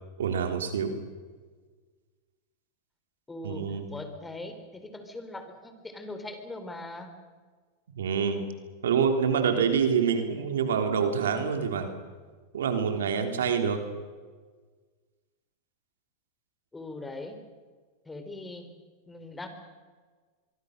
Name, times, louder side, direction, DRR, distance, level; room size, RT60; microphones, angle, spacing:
voice 1, 0.2-0.9 3.4-3.9 8.0-8.4 8.8-11.9 12.5-13.8, right 6 dB, 85° right, 6 dB, 3.3 m, -26 dB
voice 2, 3.3-7.2 16.7-17.4 18.1-18.7 19.1-19.5, left 2 dB, 10° left, 8 dB, 3.9 m, -41 dB
25.0 x 23.5 x 6.6 m, 1.5 s
hypercardioid pair, 115°, 0 cm